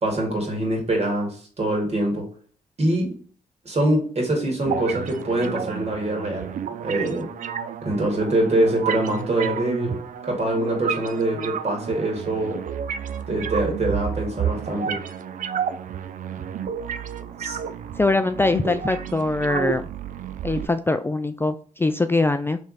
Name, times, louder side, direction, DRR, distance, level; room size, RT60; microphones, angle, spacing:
voice 1, 0.0-2.3 2.8-3.2 3.7-6.5 6.8-7.3 7.8-10.0 10.3-12.6 13.3-15.0 17.4-17.6, right 1 dB, 45° right, 2.1 m, -24 dB
sound 1, 4.7-20.7, right 8 dB, 60° right, 0.4 m, -31 dB
voice 2, 18.0-19.9 20.4-22.6, left 2 dB, 15° left, 0.3 m, -22 dB
3.4 x 3.2 x 4.0 m
supercardioid pair, 45°, 15 cm